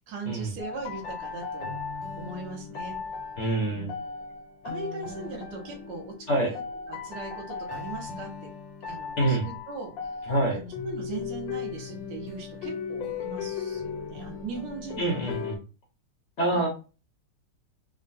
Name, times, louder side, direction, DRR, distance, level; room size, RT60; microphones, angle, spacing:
voice 1, 0.0-1.8 2.2-3.0 3.7-4.0 4.6-6.6 6.9-8.5 8.9-9.9 10.5-15.3, right 4 dB, 65° right, 1 dB, 1.5 m, -39 dB
sound 1, 0.6-15.6, left 5 dB, 75° left, 1.4 m, -37 dB
voice 2, 3.4-3.9 6.3-6.5 9.2-9.5 10.3-10.6 15.0-15.6 16.4-16.7, right 1 dB, 55° left, -2 dB, 0.8 m, -26 dB
3.7 x 2.1 x 2.5 m, 0.32 s
omnidirectional pair, 2.1 m